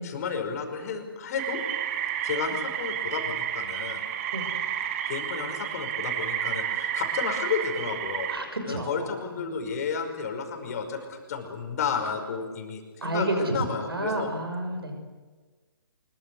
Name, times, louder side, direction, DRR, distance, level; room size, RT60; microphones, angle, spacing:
voice 1, 0.0-1.6 2.2-4.0 5.1-8.3 8.7-14.3, left 6 dB, 40° left, 5 dB, 5.4 m, -32 dB
sound 1, 1.4-8.4, right 10 dB, 35° right, 2.5 m, -31 dB
voice 2, 8.3-9.1 13.0-13.6 13.9-14.9, right 1 dB, 75° right, 5 dB, 6.4 m, -30 dB
25.0 x 23.0 x 8.2 m, 1.4 s
figure-of-eight pair, 135°, 13 cm